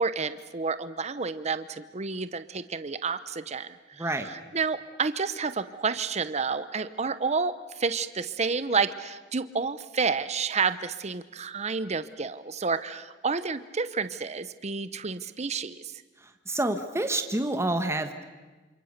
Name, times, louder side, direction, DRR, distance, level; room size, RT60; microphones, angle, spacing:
voice 1, 0.0-16.0, right 5 dB, 35° right, 13 dB, 0.8 m, -30 dB
voice 2, 16.5-18.2, right 2 dB, 15° right, 7 dB, 1.4 m, -28 dB
28.5 x 26.5 x 6.7 m, 1.3 s
head